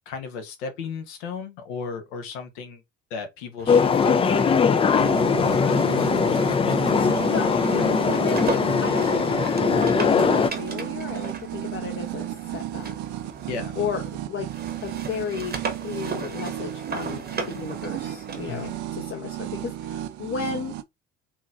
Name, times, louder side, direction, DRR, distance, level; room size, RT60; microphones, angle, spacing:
voice 1, 0.1-2.8 3.1-4.5 13.5-13.8 18.5-18.7, left 5 dB, 75° left, 1.0 m, -34 dB
sound 1, 3.6-14.2 14.5-18.8, right 4 dB, 25° right, 0.9 m, -37 dB
sound 2, 3.7-10.5, left 5 dB, 15° left, 0.3 m, -21 dB
sound 3, 5.0-20.8, right 13 dB, 55° right, 0.5 m, -34 dB
voice 2, 5.6-6.1 7.2-7.5 8.1-10.3 10.6-13.0 13.8-14.5 14.8-15.6 15.8-20.7, left 6 dB, 35° left, 0.7 m, -34 dB
3.8 x 2.8 x 2.3 m
figure-of-eight pair, 50°, 36 cm